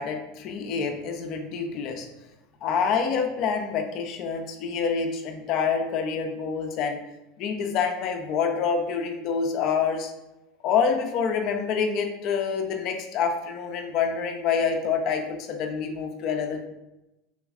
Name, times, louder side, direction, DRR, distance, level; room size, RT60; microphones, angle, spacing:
voice 1, 0.0-2.1 2.6-7.0 7.4-10.1 10.6-16.7, left 6 dB, 50° left, 3 dB, 0.5 m, -27 dB
3.4 x 3.0 x 2.4 m, 0.95 s
supercardioid pair, 115°, 0 cm